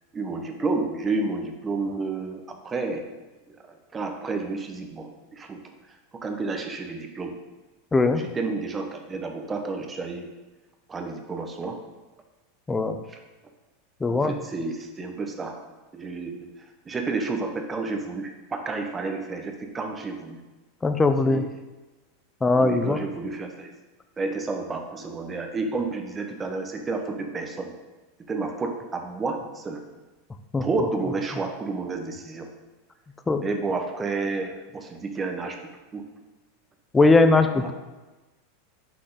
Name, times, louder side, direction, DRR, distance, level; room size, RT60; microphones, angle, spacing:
voice 1, 0.1-3.0 3.9-5.6 6.2-7.4 8.1-10.3 10.9-11.8 13.1-13.2 14.0-15.6 15.9-16.5 16.8-20.4 21.3-21.5 22.5-23.7 24.2-27.7 28.3-29.8 30.6-32.5 33.4-35.6 35.9-36.0 37.4-37.7, right 3 dB, 20° right, 4 dB, 1.1 m, -30 dB
voice 2, 7.9-8.2 12.7-13.0 14.0-14.3 20.8-21.4 22.4-23.0 30.5-30.6 33.3-33.4 36.9-37.7, left 3 dB, 15° left, 8 dB, 0.6 m, -20 dB
6.1 x 5.8 x 5.0 m, 1.2 s
figure-of-eight pair, 85°, 0 cm